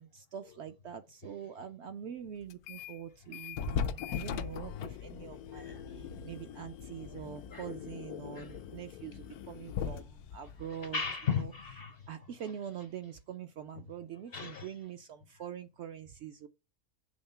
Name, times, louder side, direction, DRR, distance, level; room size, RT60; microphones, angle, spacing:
voice 1, 0.0-5.7 6.2-9.1 9.5-10.1 10.3-11.0 11.3-11.5 12.1-16.5, right 9 dB, 65° right, 0.7 m, -44 dB
sound 1, 2.5-3.0 3.3-11.8, left 8 dB, 90° left, 1.1 m, -40 dB
voice 2, 10.7-12.0 14.3-14.7, left 6 dB, 60° left, 0.6 m, -35 dB
7.8 x 3.6 x 5.5 m
omnidirectional pair, 1.5 m